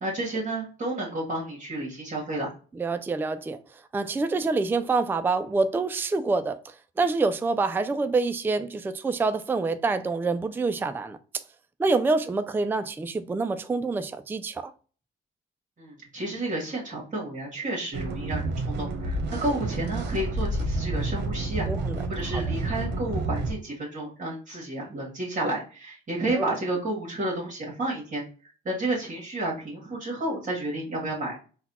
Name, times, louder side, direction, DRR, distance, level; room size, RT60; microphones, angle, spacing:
voice 1, 0.0-2.5 15.8-21.7 22.1-28.2 28.6-31.4, right 1 dB, 40° right, 1.6 m, -31 dB
voice 2, 2.8-3.6 3.9-11.2 11.8-14.7 21.7-22.0 22.3-22.4 26.3-26.5, right 3 dB, 10° right, 0.3 m, -26 dB
sound 1, 17.9-23.5, right 2 dB, 60° right, 1.0 m, -29 dB
4.1 x 2.3 x 4.1 m
cardioid pair, 90°, 20 cm